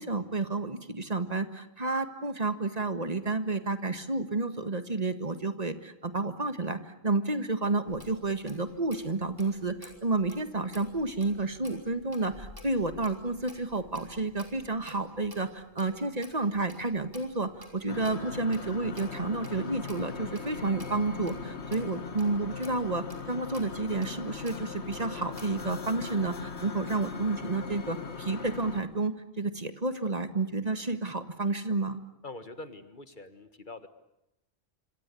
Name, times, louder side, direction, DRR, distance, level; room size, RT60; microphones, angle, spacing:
voice 1, 0.0-32.0, right 3 dB, 35° right, 10 dB, 1.7 m, -31 dB
Clock, 7.9-25.6, left 1 dB, 20° right, 5.1 m, -52 dB
sound 1, 17.9-28.8, left 5 dB, 90° left, 1.9 m, -40 dB
voice 2, 32.2-33.9, left 2 dB, 50° left, 10 dB, 1.8 m, -44 dB
26.5 x 26.0 x 8.4 m, 0.87 s
omnidirectional pair, 1.1 m